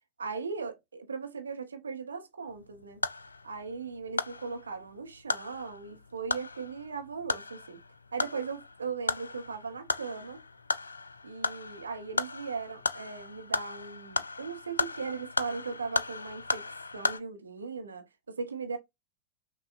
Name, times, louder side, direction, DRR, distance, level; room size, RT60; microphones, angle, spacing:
voice 1, 0.2-3.0 3.4-7.8 8.1-10.4 11.2-18.8, right 5 dB, 75° right, 0.8 m, -38 dB
sound 1, 2.5-17.2, left 4 dB, 75° left, 0.3 m, -36 dB
5.9 x 2.3 x 2.4 m
figure-of-eight pair, 90°, 0 cm